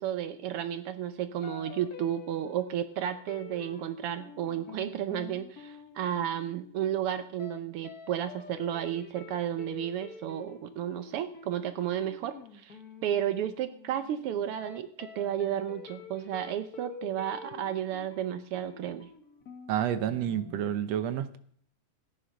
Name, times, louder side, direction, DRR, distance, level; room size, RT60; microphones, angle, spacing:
voice 1, 0.0-19.1, right 10 dB, 85° right, 11 dB, 1.2 m, -33 dB
sound 1, 1.4-7.0 7.4-7.6 7.8-20.7, left 5 dB, 40° left, 1.5 m, -48 dB
voice 2, 19.7-21.4, right 10 dB, 70° right, 12 dB, 1.8 m, -29 dB
15.5 x 10.0 x 6.3 m, 0.62 s
omnidirectional pair, 3.5 m